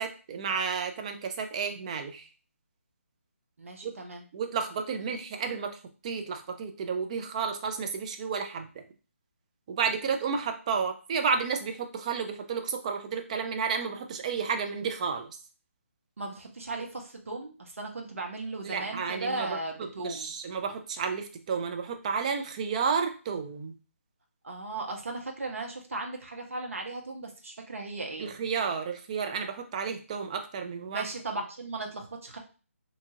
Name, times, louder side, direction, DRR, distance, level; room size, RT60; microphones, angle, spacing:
voice 1, 0.0-2.3 3.8-3.9 4.3-5.8 6.0-8.7 9.7-15.3 18.6-19.6 20.0-23.7 28.2-31.0, right 6 dB, 30° right, 6 dB, 0.4 m, -31 dB
voice 2, 3.6-4.3 16.2-20.3 24.4-28.3 30.9-32.4, right 2 dB, 70° right, 2 dB, 0.9 m, -37 dB
2.8 x 2.4 x 2.7 m, 0.36 s
figure-of-eight pair, 150°, 8 cm